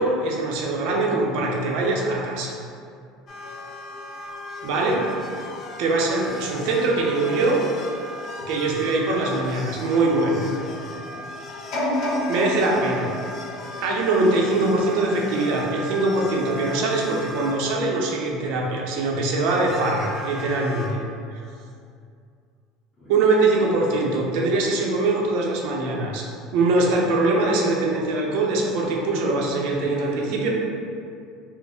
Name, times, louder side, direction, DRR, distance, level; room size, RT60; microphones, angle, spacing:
voice 1, 0.0-2.5 4.6-5.0 5.8-7.6 8.5-10.4 12.3-13.1 13.8-21.0 21.3-21.4 23.1-26.2 26.5-30.5, right 2 dB, 70° right, -1 dB, 0.6 m, -22 dB
sound 1, 3.3-17.6 18.6-18.7 19.3-20.9, left 1 dB, 40° left, 0.5 m, -37 dB
voice 2, 10.9-11.2 23.0-23.2 29.8-30.5, right 1 dB, 20° left, -12 dB, 1.4 m, -37 dB
sound 2, 11.7-14.8 15.3-15.4, left 1 dB, 55° left, 1.0 m, -29 dB
4.2 x 2.0 x 3.4 m, 2.4 s
supercardioid pair, 125°, 0 cm